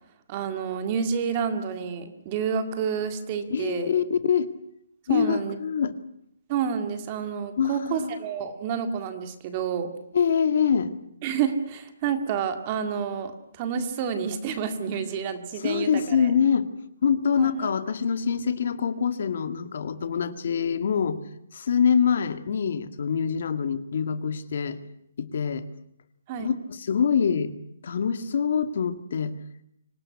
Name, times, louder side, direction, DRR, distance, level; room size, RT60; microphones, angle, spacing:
voice 1, 0.3-3.9 5.1-5.6 6.5-9.9 11.2-16.3 17.4-17.7 26.3-26.5, right 7 dB, 25° right, 8 dB, 2.0 m, -29 dB
voice 2, 3.5-4.5 5.1-6.0 7.6-8.1 10.1-10.9 15.6-16.7 17.0-21.2 21.5-24.8 25.2-25.7 26.4-27.5 27.8-29.3, left 7 dB, 50° left, 11 dB, 1.9 m, -25 dB
26.0 x 18.5 x 9.7 m, 0.74 s
hypercardioid pair, 175°, 0 cm